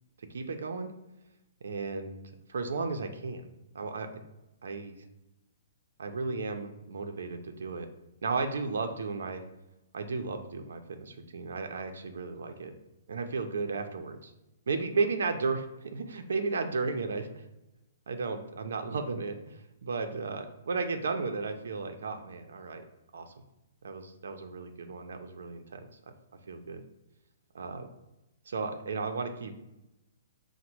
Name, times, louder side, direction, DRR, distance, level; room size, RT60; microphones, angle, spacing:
voice 1, 0.3-0.9 1.6-2.2 2.5-3.5 3.7-4.2 4.6-5.0 6.0-7.9 8.2-9.4 9.9-12.7 13.1-14.3 14.7-17.4 18.1-22.8 23.1-23.3 23.8-25.9 26.5-26.8 27.5-27.9 28.5-29.7, right 4 dB, 85° right, 6 dB, 0.6 m, -34 dB
5.1 x 2.1 x 4.4 m, 0.93 s
hypercardioid pair, 170°, 0 cm